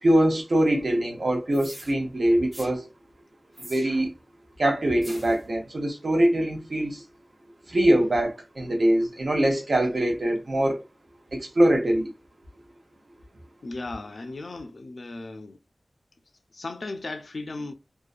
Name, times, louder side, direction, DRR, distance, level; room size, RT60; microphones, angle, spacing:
voice 1, 0.0-2.9 3.6-4.1 4.6-7.0 7.7-10.8 11.3-12.1, right 1 dB, 75° right, 0.7 m, -23 dB
sound 1, 1.5-1.9 2.5-2.7 3.5-4.2 5.0-5.4, right 1 dB, 40° right, 0.7 m, -43 dB
voice 2, 13.6-15.6 16.5-17.7, left 2 dB, 80° left, 0.3 m, -36 dB
2.5 x 2.2 x 2.4 m
wide cardioid pair, 45°, 0 cm